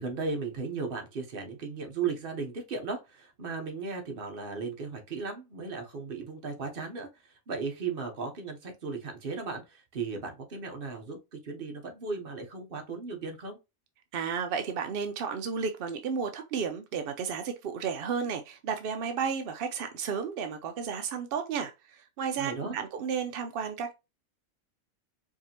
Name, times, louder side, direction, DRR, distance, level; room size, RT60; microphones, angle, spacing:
voice 1, 0.0-13.6 22.4-22.8, right 4 dB, 45° right, 1.0 m, -36 dB
voice 2, 14.1-23.9, right 6 dB, 65° right, 0.5 m, -33 dB
4.8 x 2.6 x 2.8 m
omnidirectional pair, 1.5 m